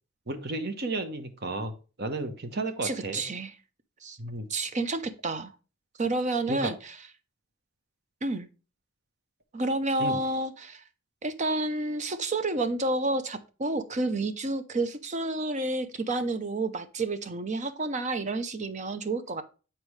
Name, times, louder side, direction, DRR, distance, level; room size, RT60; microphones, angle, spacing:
voice 1, 0.3-1.7 2.0-3.2 4.2-4.5 6.5-6.7 10.0-10.2, right 2 dB, 55° right, 8 dB, 1.0 m, -33 dB
voice 2, 2.8-3.5 4.0-4.2 4.5-5.5 6.0-6.8 8.2-8.5 9.5-10.8 11.2-19.4, right 2 dB, 40° right, 11 dB, 0.7 m, -30 dB
8.0 x 4.3 x 3.2 m, 0.34 s
head